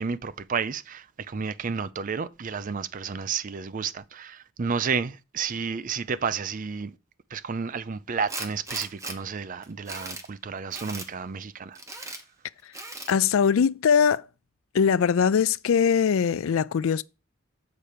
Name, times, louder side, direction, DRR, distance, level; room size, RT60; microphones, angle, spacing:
voice 1, 0.0-6.9 7.3-11.8 12.0-12.1, right 5 dB, 40° right, 0.4 m, -31 dB
Tools, 8.3-9.2 9.6-10.3 10.7-11.1 11.7-12.2 12.7-13.2, right 2 dB, 15° right, 0.9 m, -37 dB
voice 2, 13.1-14.3 14.7-17.0, left 7 dB, 70° left, 0.4 m, -21 dB
6.9 x 4.4 x 6.6 m
head